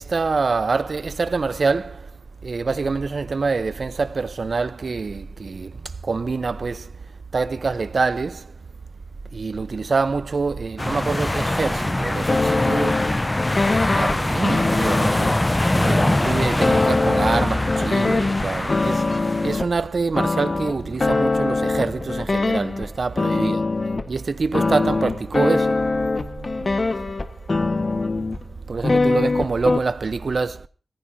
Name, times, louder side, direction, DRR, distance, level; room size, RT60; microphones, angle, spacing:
voice 1, 0.0-2.1 2.4-5.7 6.0-6.9 7.3-8.5 9.3-13.0 13.9-15.4 15.7-19.0 19.4-23.6 24.1-25.8 28.7-30.7, right 4 dB, 55° right, 0.9 m, -25 dB
sound 1, 10.8-19.6, left 1 dB, 20° left, 0.8 m, -23 dB
sound 2, 12.3-19.7 20.1-22.9 23.2-24.1 24.5-28.4 28.8-29.8, left 3 dB, 40° left, 1.6 m, -23 dB
25.5 x 16.0 x 2.8 m
cardioid pair, 65°, 0 cm